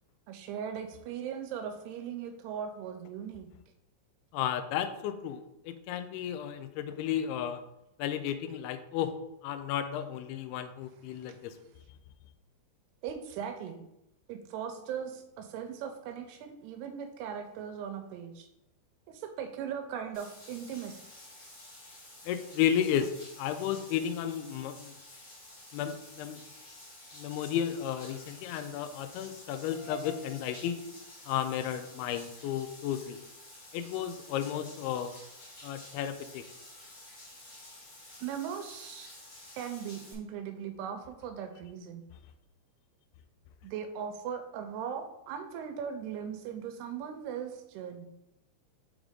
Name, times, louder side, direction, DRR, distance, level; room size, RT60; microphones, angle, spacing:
voice 1, 0.3-3.5 11.3-11.4 13.0-13.8 14.3-18.5 19.1-21.0 38.2-39.1 39.6-42.0 43.6-48.1, right 8 dB, 85° right, 6 dB, 2.5 m, -39 dB
voice 2, 4.3-7.6 8.0-9.2 9.4-11.5 22.3-24.9 25.7-26.4 27.1-30.8 31.3-33.2 33.7-35.1 35.6-36.4, left 9 dB, 85° left, 9 dB, 2.3 m, -33 dB
Bathtub (filling or washing), 20.1-40.1, left 1 dB, 60° left, 0.9 m, -51 dB
6.2 x 5.1 x 3.7 m, 0.86 s
omnidirectional pair, 5.0 m